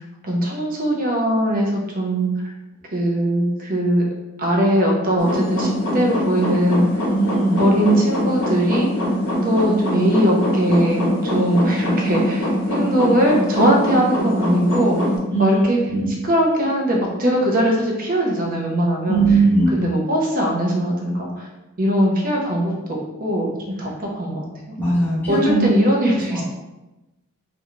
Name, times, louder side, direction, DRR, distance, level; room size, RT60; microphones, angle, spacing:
voice 1, 0.2-2.5 2.9-4.0 4.4-7.0 7.6-8.9 9.4-15.0 15.4-15.8 16.2-19.2 19.7-21.5 21.8-23.5 23.8-24.4 25.3-26.4, equal, 40° right, -1 dB, 0.5 m, -20 dB
sound 1, 5.2-15.2, equal, 60° left, 0.8 m, -23 dB
voice 2, 7.1-7.6 15.3-15.6 15.9-16.1 19.1-19.7 24.8-25.7 26.3-26.4, right 3 dB, 10° left, -8 dB, 0.6 m, -19 dB
2.5 x 2.3 x 3.0 m, 1.0 s
head